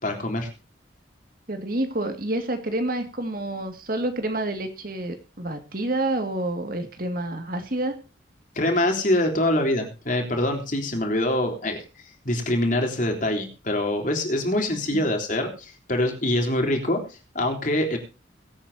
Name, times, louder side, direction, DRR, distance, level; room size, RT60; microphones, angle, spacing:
voice 1, 0.0-0.5 8.6-11.8 12.2-18.0, left 1 dB, 45° left, 3 dB, 3.6 m, -24 dB
voice 2, 1.5-7.9 14.9-15.0, right 1 dB, 50° right, 7 dB, 2.1 m, -28 dB
22.5 x 8.8 x 2.8 m, 0.32 s
head